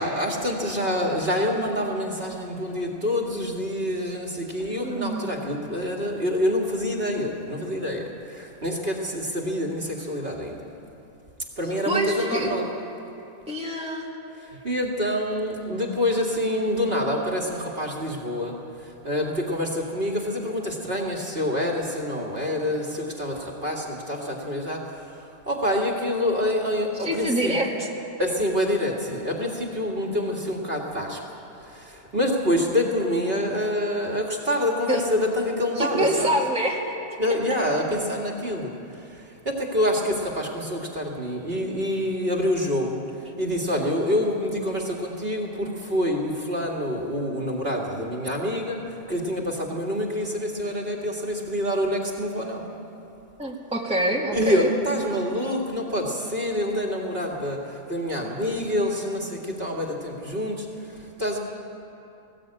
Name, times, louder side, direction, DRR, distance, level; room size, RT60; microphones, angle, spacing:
voice 1, 0.0-10.6 11.6-12.7 14.5-18.6 18.8-27.5 28.2-36.3 37.2-43.0 43.4-52.7 54.3-61.4, left 1 dB, 45° right, 0 dB, 2.3 m, -27 dB
voice 2, 4.8-5.5 11.9-12.5 13.5-14.1 27.0-27.9 34.9-35.0 35.8-36.9 53.4-54.7, right 1 dB, 5° right, -2 dB, 2.1 m, -26 dB
19.0 x 17.5 x 8.8 m, 2.8 s
omnidirectional pair, 1.4 m